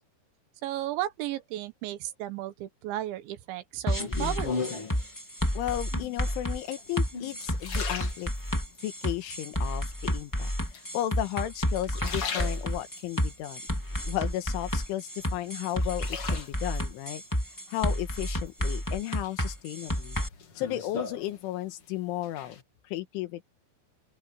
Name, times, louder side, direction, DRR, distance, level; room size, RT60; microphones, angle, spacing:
voice 1, 0.6-4.8, right 14 dB, 75° right, 3.4 m, -34 dB
sound 1, 3.9-20.3, equal, 25° left, 0.4 m, -30 dB
sound 2, 4.0-5.1 5.8-6.3 6.9-8.8 9.3-9.9 10.7-11.4 11.7-13.1 13.6-14.8 15.2-16.8 18.2-18.8 19.2-21.8 22.1-22.6, left 5 dB, 45° left, 1.9 m, -38 dB
voice 2, 5.6-8.3 8.8-13.6 14.1-17.2 17.7-20.2 20.6-23.4, left 13 dB, 85° left, 3.9 m, -34 dB
open air
omnidirectional pair, 5.5 m